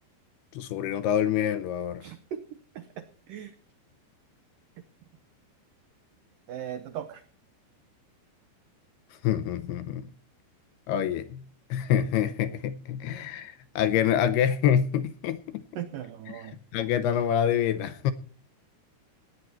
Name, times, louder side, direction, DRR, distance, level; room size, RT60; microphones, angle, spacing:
voice 1, 0.5-2.0 9.2-10.0 10.9-11.4 11.7-15.6 16.3-16.4 16.7-18.1, left 9 dB, 80° left, 2.4 m, -26 dB
voice 2, 2.0-2.4 2.8-3.5 6.5-7.2 15.8-16.6, right 10 dB, 90° right, 1.9 m, -38 dB
18.0 x 9.6 x 4.4 m
omnidirectional pair, 5.2 m